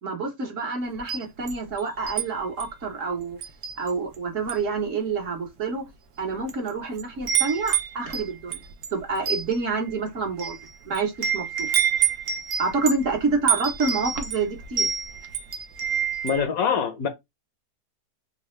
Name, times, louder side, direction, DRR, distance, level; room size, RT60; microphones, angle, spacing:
voice 1, 0.0-3.4 3.8-5.8 6.2-8.6 8.9-10.6 10.8-11.7 12.6-14.9, right 4 dB, 55° right, 1.3 m, -28 dB
Wind chime, 1.0-2.3 2.6-2.8 3.4-4.2 4.4-4.8 5.5-5.6 6.3-6.7 6.9-16.4, right 8 dB, 85° right, 1.3 m, -27 dB
voice 2, 16.2-17.1, left 7 dB, 65° left, 1.0 m, -24 dB
3.9 x 2.3 x 3.1 m
omnidirectional pair, 1.7 m